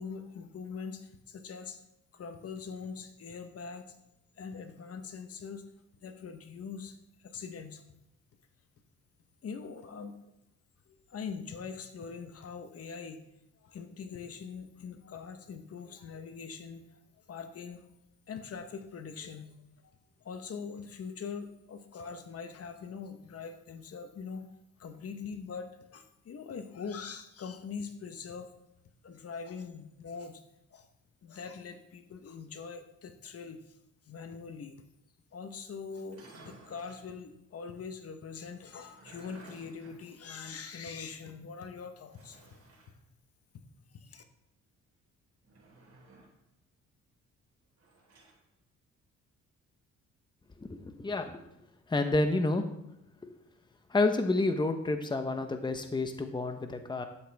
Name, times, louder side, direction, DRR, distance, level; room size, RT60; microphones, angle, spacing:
voice 1, 0.0-1.8 2.1-4.0 4.4-5.7 6.0-7.8 9.4-10.1 10.9-13.2 13.6-17.0 17.3-17.8 18.3-24.5 24.8-28.5 29.0-30.4 30.7-30.9 31.2-33.8 34.1-34.8 35.3-42.4 43.9-44.2, left 5 dB, 50° left, 7 dB, 1.2 m, -43 dB
sound 1, 36.0-37.1 38.6-40.9 41.2-41.3 42.1-42.9 45.4-46.4 47.8-48.4, right 3 dB, 55° right, 4.1 m, -56 dB
voice 2, 50.6-51.4 51.9-52.7 53.2-53.3 53.9-57.1, left 2 dB, 15° left, 6 dB, 1.0 m, -29 dB
12.5 x 7.9 x 3.5 m, 0.83 s
cardioid pair, 90°, 30 cm